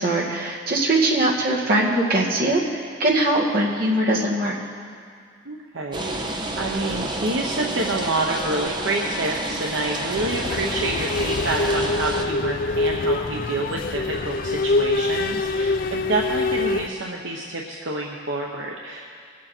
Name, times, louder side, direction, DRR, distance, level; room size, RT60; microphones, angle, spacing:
voice 1, 0.0-4.6, right 1 dB, 50° right, -4 dB, 2.1 m, -21 dB
voice 2, 5.4-6.3 6.6-19.2, right 2 dB, 75° right, -1 dB, 0.9 m, -28 dB
sound 1, 5.9-12.2, right 2 dB, 25° right, 1.0 m, -30 dB
sound 2, 10.2-16.9, left 2 dB, 45° left, 0.4 m, -25 dB
21.0 x 7.6 x 4.5 m, 2.2 s
head